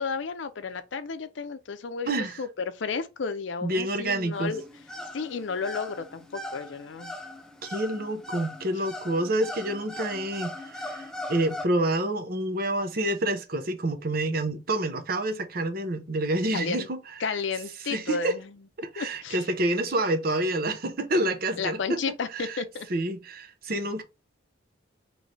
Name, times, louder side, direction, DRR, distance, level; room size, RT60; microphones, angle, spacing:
voice 1, 0.0-2.5 2.7-4.6 5.1-7.1 8.8-8.9 16.5-16.9 17.2-18.5 19.0-19.4 21.6-22.9, left 5 dB, 75° left, 0.6 m, -32 dB
voice 2, 2.1-2.4 3.6-4.5 7.7-17.0 17.9-18.4 18.8-22.0 22.3-22.6 22.9-24.0, right 1 dB, 50° right, 0.7 m, -28 dB
sound 1, 4.3-11.6, left 1 dB, 5° left, 0.4 m, -40 dB
3.2 x 3.1 x 3.9 m
head